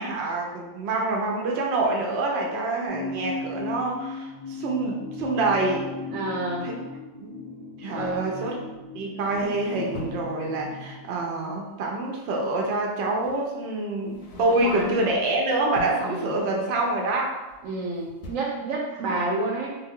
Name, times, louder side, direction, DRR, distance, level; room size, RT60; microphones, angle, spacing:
voice 1, 0.0-5.8 6.6-6.7 7.2-7.4 7.8-8.5 8.9-17.4, right 2 dB, 65° right, 0 dB, 0.7 m, -26 dB
sound 1, 2.9-11.0, left 3 dB, 35° right, 0.4 m, -37 dB
voice 2, 6.1-6.7 7.9-8.4 14.5-15.0 16.0-16.4 17.6-19.8, right 2 dB, 80° right, -1 dB, 1.0 m, -29 dB
sound 2, 9.3-10.4 12.0-12.1 13.2-13.4 14.0-15.3 15.6-16.1 17.5-17.8 18.1-18.4, left 1 dB, 65° left, 0.8 m, -41 dB
2.5 x 2.3 x 3.5 m, 1.1 s
omnidirectional pair, 1.4 m